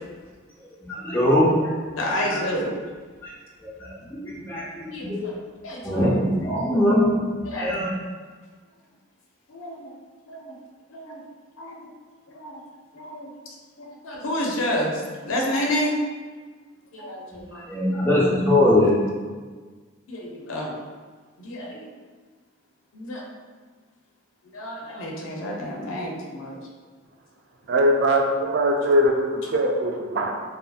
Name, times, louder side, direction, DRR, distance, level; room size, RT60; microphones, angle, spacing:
voice 1, 0.8-1.6 2.3-2.4 4.1-5.2 5.8-7.9 17.7-19.0, left 1 dB, 10° left, -8 dB, 0.6 m, -21 dB
voice 2, 2.0-2.7 4.0-4.1 4.5-5.4 5.6-6.2 7.4-7.8 9.5-9.9 10.3-10.5 10.9-11.2 11.6-11.9 12.3-12.6 12.9-13.3 13.8-16.0 16.9-17.7 18.8-18.9 20.1-20.7 21.4-21.8 22.9-23.2 24.5-26.6, left 1 dB, 70° left, -2 dB, 0.5 m, -30 dB
voice 3, 27.7-30.3, equal, 55° right, 2 dB, 0.3 m, -21 dB
2.6 x 2.6 x 2.3 m, 1.4 s
head